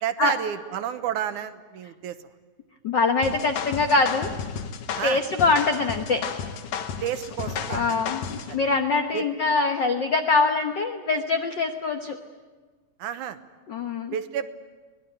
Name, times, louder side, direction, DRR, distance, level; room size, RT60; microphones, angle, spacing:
voice 1, 0.0-2.2 5.0-5.2 7.0-8.0 8.5-8.6 9.1-9.3 13.0-13.4 14.1-14.5, right 9 dB, 75° right, 10 dB, 2.3 m, -30 dB
voice 2, 2.8-4.3 5.0-6.2 7.7-12.2 13.7-14.1, left 3 dB, 70° left, 5 dB, 1.0 m, -23 dB
sound 1, 3.2-8.5, left 7 dB, 90° left, 3.0 m, -33 dB
23.5 x 19.5 x 9.2 m, 1.3 s
omnidirectional pair, 3.7 m